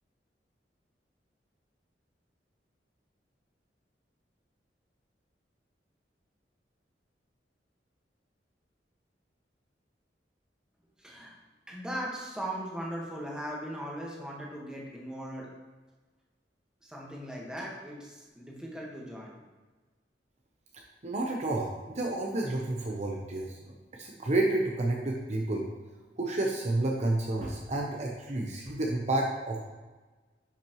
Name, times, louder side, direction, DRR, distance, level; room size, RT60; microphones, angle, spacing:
voice 1, 11.0-11.4 11.7-15.5 16.8-19.3, right 1 dB, 5° right, -3 dB, 1.5 m, -38 dB
voice 2, 21.0-25.7 26.2-29.7, right 2 dB, 40° right, 0 dB, 0.8 m, -30 dB
10.5 x 5.8 x 3.1 m, 1.3 s
head